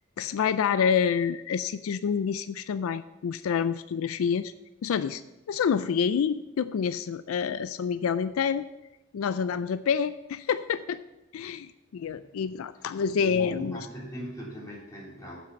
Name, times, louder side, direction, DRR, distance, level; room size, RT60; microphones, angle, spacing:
voice 1, 0.2-4.5 4.8-5.2 5.5-8.7 9.1-11.0 11.3-13.9, left 7 dB, 85° left, 13 dB, 0.4 m, -27 dB
voice 2, 13.2-15.4, equal, 15° left, -6 dB, 3.3 m, -40 dB
7.6 x 6.1 x 6.8 m, 0.97 s
head